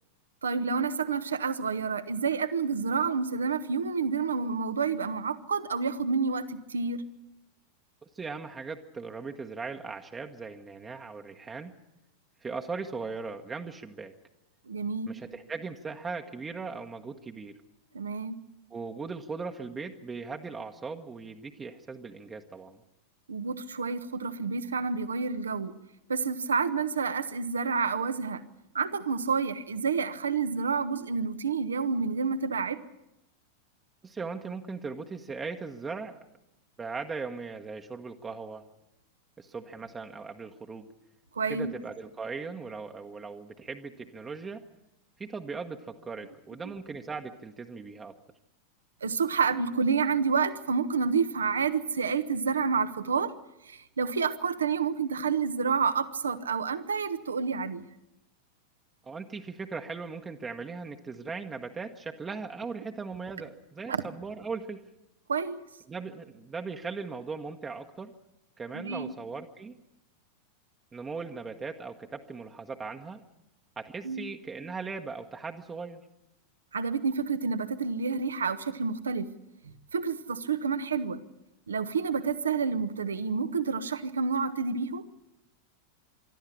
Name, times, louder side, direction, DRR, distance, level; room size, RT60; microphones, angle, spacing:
voice 1, 0.4-7.0 14.7-15.1 17.9-18.4 23.3-25.7 26.1-28.4 28.7-32.8 41.3-41.7 49.0-53.3 53.6-57.8 63.9-64.0 65.3-65.6 68.7-69.1 74.0-74.2 76.7-79.3 79.9-81.2 81.7-85.0, right 5 dB, 70° right, 12 dB, 1.2 m, -29 dB
voice 2, 8.0-11.7 12.4-14.1 15.1-17.6 18.7-22.8 34.0-36.2 36.8-38.6 39.4-40.9 41.5-44.7 45.2-48.2 59.0-64.8 65.9-68.1 68.6-69.8 70.9-73.2 73.8-76.0, right 4 dB, 15° right, 4 dB, 1.2 m, -38 dB
24.5 x 13.0 x 10.0 m, 0.87 s
figure-of-eight pair, 90°, 0 cm